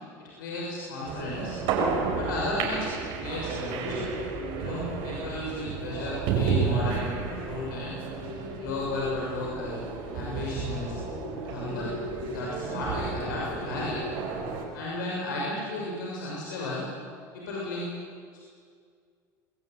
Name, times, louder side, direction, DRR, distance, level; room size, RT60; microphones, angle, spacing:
voice 1, 0.2-1.6 2.1-4.1 4.6-8.0 8.6-9.8 10.1-10.9 11.4-11.9 12.2-14.0 14.7-16.9 17.3-17.9, left 2 dB, 85° left, -3 dB, 6.6 m, -34 dB
sound 1, 1.1-14.6, right 4 dB, 65° right, 6.7 m, -32 dB
26.5 x 20.5 x 9.7 m, 2.1 s
hypercardioid pair, 80°, 10 cm